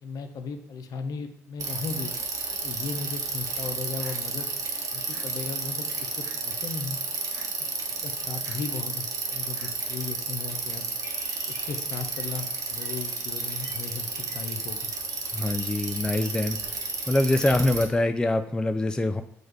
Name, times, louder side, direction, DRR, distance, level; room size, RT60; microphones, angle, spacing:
voice 1, 0.0-2.1 2.6-4.5 4.9-7.0 8.0-10.9 11.5-14.9, left 5 dB, 55° left, 7 dB, 0.5 m, -36 dB
Bicycle, 1.6-17.8, right 4 dB, 45° right, 0.9 m, -32 dB
sound 1, 4.0-4.2 5.1-5.3 6.2-6.6 7.3-7.5 8.4-8.6 9.5-9.7, right 1 dB, 15° right, 1.3 m, -49 dB
sound 2, 11.0-17.6, left 3 dB, 35° left, 1.1 m, -49 dB
voice 2, 15.3-16.6 17.1-19.2, left 1 dB, 10° left, 9 dB, 0.3 m, -24 dB
6.2 x 2.2 x 3.2 m, 0.72 s
hypercardioid pair, 50°, 8 cm